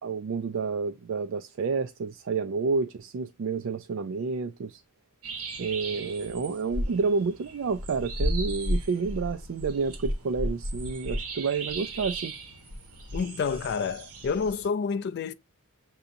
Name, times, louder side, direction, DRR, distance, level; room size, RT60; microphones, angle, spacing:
voice 1, 0.0-4.8 5.6-12.3, right 4 dB, 60° right, 0.3 m, -29 dB
sound 1, 5.2-14.7, equal, 90° right, 1.2 m, -34 dB
voice 2, 13.1-15.3, left 5 dB, 50° left, 0.3 m, -29 dB
6.8 x 2.7 x 2.6 m
head